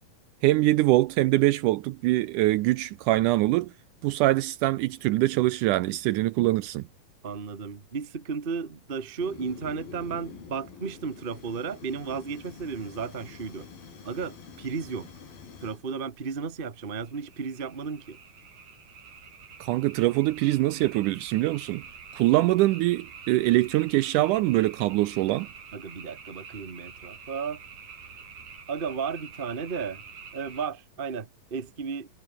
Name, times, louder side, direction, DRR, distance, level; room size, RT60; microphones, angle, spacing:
voice 1, 0.4-3.7 4.0-6.8 19.6-21.8 22.1-25.5, right 17 dB, 80° right, 1.9 m, -23 dB
voice 2, 7.2-13.7 14.0-15.1 15.6-18.2 25.7-27.6 28.7-30.0 30.3-32.1, right 5 dB, 35° right, 0.9 m, -34 dB
Fire, 9.2-15.8, left 6 dB, 85° left, 6.4 m, -46 dB
sound 1, 17.0-30.7, right 6 dB, 60° right, 4.8 m, -47 dB
omnidirectional pair, 4.0 m